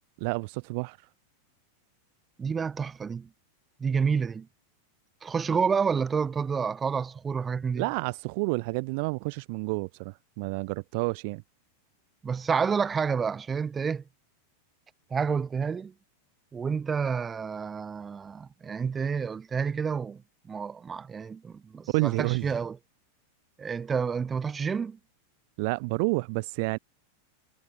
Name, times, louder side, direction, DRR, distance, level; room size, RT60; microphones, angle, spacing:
voice 1, 0.2-1.0 7.8-11.4 21.9-22.5 25.6-26.8, right 30 dB, 45° right, 2.6 m, -29 dB
voice 2, 2.4-3.3 3.8-4.5 5.2-7.9 12.2-14.0 15.1-15.9 16.5-20.2 20.5-22.8 23.6-25.0, right 6 dB, 20° right, 5.1 m, -29 dB
figure-of-eight pair, 90°, 0 cm